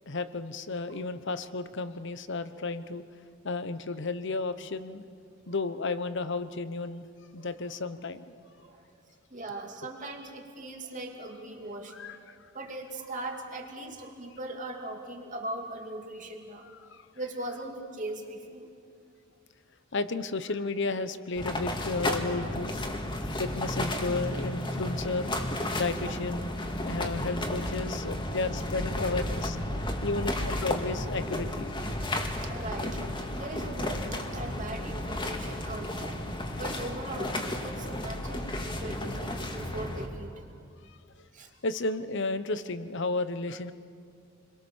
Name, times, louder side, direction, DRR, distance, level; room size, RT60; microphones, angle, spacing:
voice 1, 0.1-3.0 3.4-5.0 5.5-7.1 7.3-8.3 11.9-12.4 16.9-17.0 19.9-22.7 23.3-25.3 25.7-26.5 26.8-29.6 30.0-31.7 40.9-41.0 41.6-43.7, left 3 dB, 60° left, 12 dB, 1.0 m, -33 dB
voice 2, 9.3-12.2 12.5-16.7 17.1-18.7 26.0-26.1 32.3-33.0 33.3-36.2 36.6-37.4 37.6-40.6 41.3-41.5, right 2 dB, 40° right, 2 dB, 2.9 m, -40 dB
sound 1, 21.4-40.1, left 1 dB, 25° left, 2.1 m, -33 dB
29.0 x 22.0 x 7.3 m, 2.3 s
head